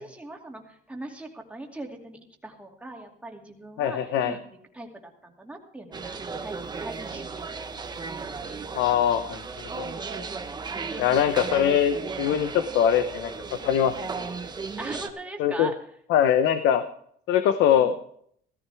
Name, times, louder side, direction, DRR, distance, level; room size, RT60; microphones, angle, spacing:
voice 1, 0.0-4.4 4.7-7.6 10.9-11.3 14.8-15.8 17.7-17.9, right 2 dB, 5° right, 1 dB, 2.5 m, -41 dB
voice 2, 3.8-4.3 8.7-9.4 9.8-9.9 10.1-10.3 11.0-13.3 13.6-14.1 15.4-15.7 16.1-16.8 17.3-17.9, left 9 dB, 80° left, 10 dB, 0.9 m, -22 dB
sound 1, 5.9-15.1, right 4 dB, 25° right, 1.1 m, -35 dB
16.0 x 14.0 x 3.5 m, 0.64 s
cardioid pair, 125°, 18 cm